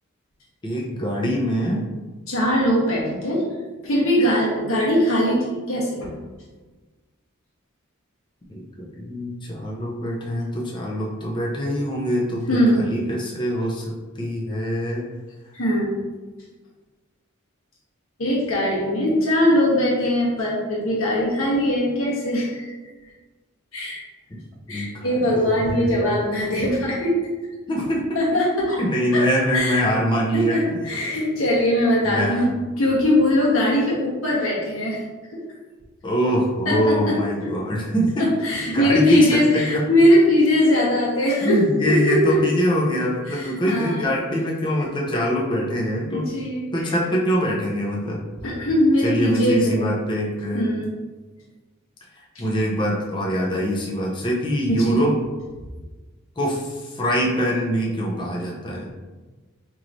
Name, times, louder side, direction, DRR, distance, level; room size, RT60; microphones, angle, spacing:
voice 1, 0.6-1.9 8.5-15.1 24.7-26.2 27.7-28.0 28.8-31.0 32.0-32.5 36.0-38.3 38.7-39.8 41.4-46.3 46.7-48.2 49.0-50.7 52.4-55.1 56.4-58.9, equal, 20° left, -3 dB, 0.6 m, -24 dB
voice 2, 2.3-3.4 3.8-6.1 12.5-12.8 15.5-15.9 18.2-22.8 23.7-24.0 24.7-27.2 28.1-28.8 29.1-29.2 29.5-29.8 30.3-32.5 32.8-35.0 35.3-35.4 36.6-37.5 38.2-41.6 41.9-42.4 43.3-44.2 46.1-46.6 48.4-49.8 50.5-50.9 54.7-55.0, left 1 dB, 70° left, -4 dB, 1.2 m, -21 dB
4.6 x 2.9 x 2.6 m, 1.3 s
head